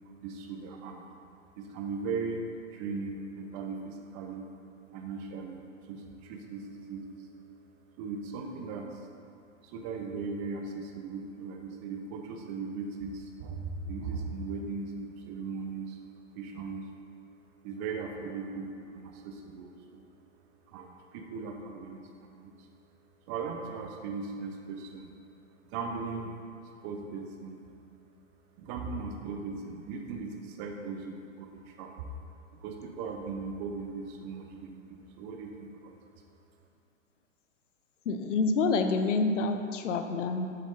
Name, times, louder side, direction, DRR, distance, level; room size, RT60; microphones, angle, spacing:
voice 1, 0.0-1.1 1.6-2.4 2.7-4.5 4.9-7.3 8.0-9.1 9.6-16.0 16.3-16.9 17.6-20.0 20.7-22.7 23.3-25.1 25.6-26.3 26.8-27.7 28.6-32.1 32.5-36.0, right 4 dB, 15° right, 3 dB, 0.3 m, -38 dB
voice 2, 38.0-40.5, left 3 dB, 65° left, 7 dB, 0.9 m, -27 dB
10.0 x 7.6 x 3.8 m, 2.4 s
hypercardioid pair, 120°, 40 cm